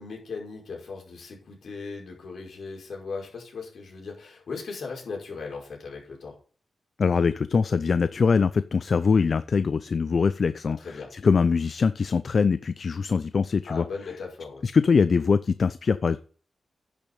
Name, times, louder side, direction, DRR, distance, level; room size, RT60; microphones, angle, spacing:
voice 1, 0.0-6.3 10.8-11.1 13.7-14.7, left 4 dB, 70° left, -1 dB, 5.1 m, -38 dB
voice 2, 7.0-13.8 14.6-16.2, left 5 dB, 55° left, 14 dB, 0.5 m, -23 dB
10.5 x 7.2 x 5.4 m, 0.41 s
cardioid pair, 90°, 0 cm